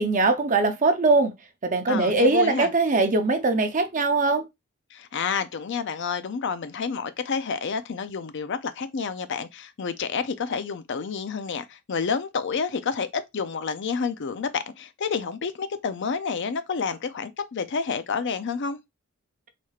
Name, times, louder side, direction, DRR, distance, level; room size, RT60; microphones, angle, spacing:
voice 1, 0.0-1.3 1.6-4.4, right 3 dB, 35° right, 0.6 m, -21 dB
voice 2, 1.9-2.7 4.9-18.8, left 5 dB, 55° left, 0.5 m, -29 dB
4.3 x 3.1 x 2.4 m
head